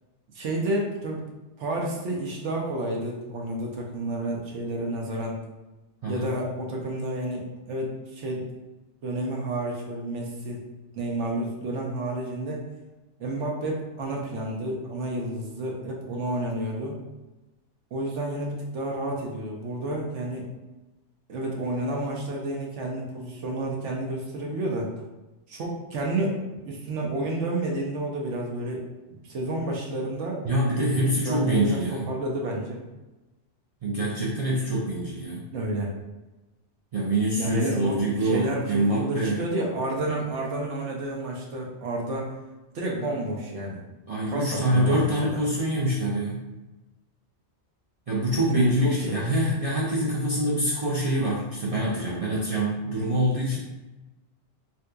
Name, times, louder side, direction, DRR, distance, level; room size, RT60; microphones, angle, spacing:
voice 1, 0.3-1.2 1.6-5.4 6.1-8.4 9.0-10.7 10.9-12.6 13.2-17.0 17.9-20.5 21.3-24.9 25.5-28.8 29.1-30.4 30.8-31.8 32.1-32.8 35.5-35.9 37.3-42.3 42.7-43.8 44.3-45.3 48.5-49.2, right 1 dB, 85° right, -2 dB, 1.0 m, -30 dB
voice 2, 30.4-32.0 33.8-35.5 36.9-39.5 44.1-46.4 48.1-53.6, right 1 dB, 60° right, -5 dB, 0.3 m, -25 dB
3.5 x 2.8 x 2.3 m, 1.1 s
omnidirectional pair, 1.2 m